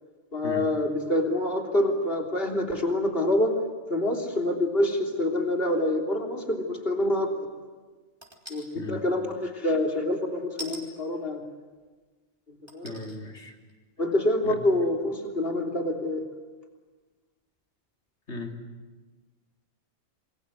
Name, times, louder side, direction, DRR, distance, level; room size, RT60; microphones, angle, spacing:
voice 1, 0.3-3.6 3.9-7.3 8.5-11.4 12.5-12.9 14.0-16.3, left 1 dB, 55° left, 2 dB, 3.6 m, -26 dB
sound 1, 8.2-8.7 10.6-10.8 11.8-11.9 12.7-13.2 13.7-13.8, equal, 25° right, 3.7 m, -41 dB
voice 2, 12.8-13.5 14.4-14.6 18.3-18.6, left 2 dB, 90° left, 2 dB, 3.3 m, -36 dB
27.5 x 22.0 x 8.2 m, 1.4 s
omnidirectional pair, 1.1 m